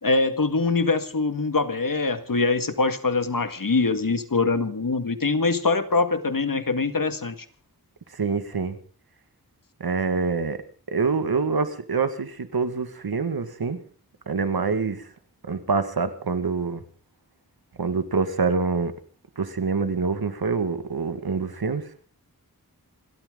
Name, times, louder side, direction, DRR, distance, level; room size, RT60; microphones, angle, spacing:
voice 1, 0.0-7.3, left 3 dB, 60° left, 2.0 m, -23 dB
voice 2, 8.2-8.8 9.8-10.6 10.9-13.8 14.3-15.1 15.5-16.8 17.8-18.9 19.4-21.8, right 4 dB, 80° right, 1.8 m, -25 dB
28.0 x 13.5 x 3.9 m
wide cardioid pair, 50°, 36 cm